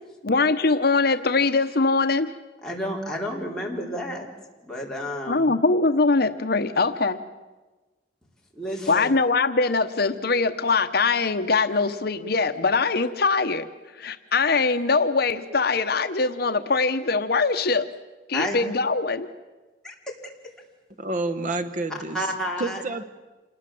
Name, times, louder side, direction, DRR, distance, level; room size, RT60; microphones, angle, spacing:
voice 1, 0.2-2.3 5.3-7.2 8.9-13.6 14.0-17.9 18.3-19.3, left 3 dB, 60° left, 8 dB, 1.0 m, -22 dB
voice 2, 2.6-4.3 4.6-5.5 8.6-9.1 18.3-18.6 19.8-20.0 22.1-22.8, equal, 5° left, -3 dB, 4.2 m, -30 dB
voice 3, 21.0-22.3 22.6-23.0, right 2 dB, 45° right, 11 dB, 1.0 m, -29 dB
27.5 x 20.0 x 7.7 m, 1.2 s
head